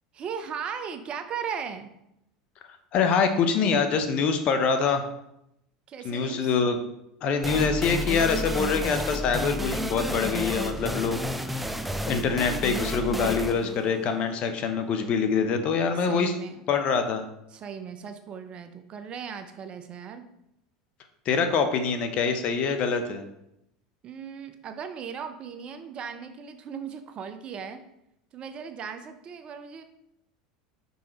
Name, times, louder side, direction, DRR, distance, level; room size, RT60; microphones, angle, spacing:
voice 1, 0.1-1.9 5.9-6.6 16.0-16.6 17.5-20.3 24.0-27.8 28.3-29.8, right 7 dB, 40° right, 9 dB, 0.8 m, -37 dB
voice 2, 2.9-5.0 6.0-6.8 7.2-11.6 12.1-16.3 16.7-17.2 21.2-23.3, left 5 dB, 50° left, 7 dB, 0.9 m, -25 dB
sound 1, 7.4-14.9, equal, 5° right, 0.6 m, -31 dB
5.6 x 5.3 x 4.4 m, 0.81 s
hypercardioid pair, 85°, 3 cm